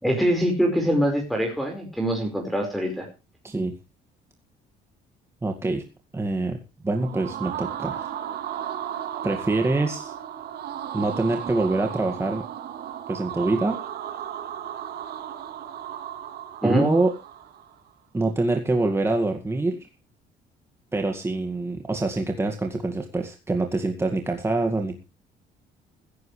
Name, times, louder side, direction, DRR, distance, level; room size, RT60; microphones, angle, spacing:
voice 1, 0.0-3.1 16.6-16.9, equal, ahead, 0 dB, 5.0 m, -23 dB
voice 2, 5.4-5.8 6.1-8.1 9.2-10.1 10.9-12.4 13.1-13.8 16.6-17.1 18.1-19.9 20.9-25.0, right 2 dB, 15° right, 4 dB, 2.1 m, -25 dB
sound 1, 6.9-17.7, right 10 dB, 70° right, 3.0 m, -35 dB
16.0 x 15.5 x 3.3 m, 0.31 s
cardioid pair, 110°, 17 cm